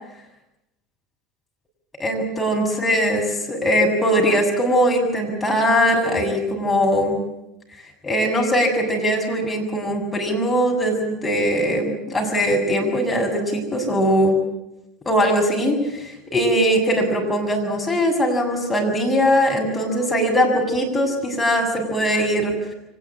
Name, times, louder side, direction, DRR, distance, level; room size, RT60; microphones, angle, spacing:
voice 1, 2.0-7.2 8.0-14.4 15.1-22.5, equal, 10° left, 0 dB, 7.2 m, -20 dB
24.0 x 20.0 x 8.9 m, 0.90 s
figure-of-eight pair, 70°, 0 cm